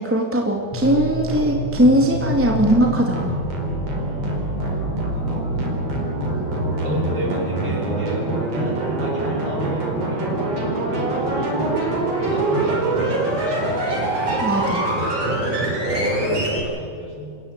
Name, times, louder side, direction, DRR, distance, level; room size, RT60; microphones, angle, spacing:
voice 1, 0.0-3.4 14.4-14.8, right 1 dB, 5° right, 1 dB, 1.8 m, -19 dB
sound 1, 0.7-16.6, right 2 dB, 55° right, 5.5 m, -24 dB
voice 2, 3.9-4.6 6.8-9.9 10.4-11.7 12.3-13.4 14.8-17.4, equal, 35° right, -2 dB, 7.8 m, -30 dB
28.0 x 15.5 x 8.9 m, 2.2 s
omnidirectional pair, 3.3 m